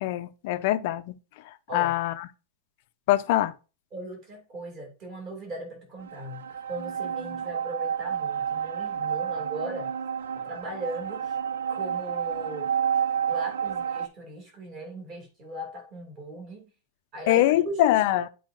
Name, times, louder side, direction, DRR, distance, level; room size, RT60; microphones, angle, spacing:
voice 1, 0.0-1.0 1.7-2.1 3.1-3.5 17.3-18.3, left 14 dB, 40° left, 0.5 m, -23 dB
voice 2, 3.9-9.9 10.3-11.4 11.7-12.7 13.3-16.7 17.1-18.0, right 1 dB, 25° right, 2.4 m, -38 dB
sound 1, 6.0-14.1, right 8 dB, 85° right, 0.6 m, -30 dB
10.5 x 4.7 x 2.5 m
supercardioid pair, 175°, 0 cm